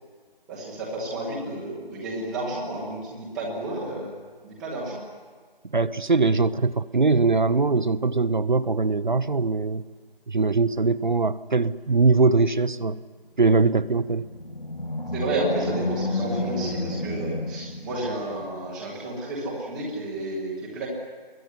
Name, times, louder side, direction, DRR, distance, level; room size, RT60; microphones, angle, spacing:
voice 1, 0.5-4.1 4.4-5.0 15.1-20.9, right 1 dB, ahead, -5 dB, 1.0 m, -31 dB
voice 2, 5.7-9.8 10.3-13.0 13.4-14.2, right 3 dB, 55° right, 13 dB, 0.9 m, -21 dB
Animal, 14.1-18.4, left 2 dB, 90° left, 5.3 m, -30 dB
22.0 x 18.0 x 9.7 m, 1.5 s
figure-of-eight pair, 165°, 29 cm